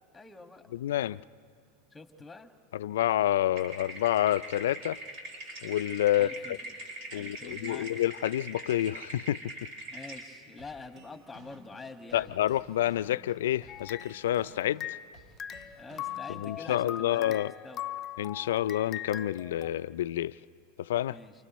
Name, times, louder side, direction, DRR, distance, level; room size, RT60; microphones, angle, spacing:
voice 1, 0.1-0.6 1.9-2.5 6.2-6.6 7.1-7.9 9.9-12.3 15.7-17.3 17.6-17.8 21.1-21.3, left 3 dB, 10° left, 6 dB, 1.8 m, -46 dB
voice 2, 0.7-1.2 2.7-5.0 5.6-6.6 7.1-9.4 12.1-15.0 16.4-17.5 18.2-20.3 20.8-21.2, left 12 dB, 80° left, 17 dB, 0.4 m, -28 dB
sound 1, 3.6-10.2, right 2 dB, 55° right, 6.7 m, -42 dB
sound 2, 10.6-16.6, right 2 dB, 40° right, 2.9 m, -55 dB
sound 3, 13.7-15.1 15.4-19.7, left 11 dB, 35° left, 0.6 m, -40 dB
29.0 x 28.5 x 3.1 m, 2.5 s
hypercardioid pair, 100°, 0 cm